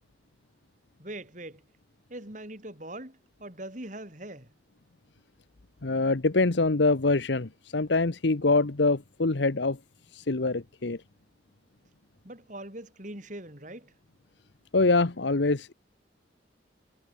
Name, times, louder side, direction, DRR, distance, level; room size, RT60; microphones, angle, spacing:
voice 1, 1.0-1.6 2.1-4.5 12.2-13.9, right 1 dB, 40° right, 3.7 m, -41 dB
voice 2, 5.8-9.8 10.1-11.0 14.7-15.7, left 3 dB, 70° left, 1.0 m, -24 dB
head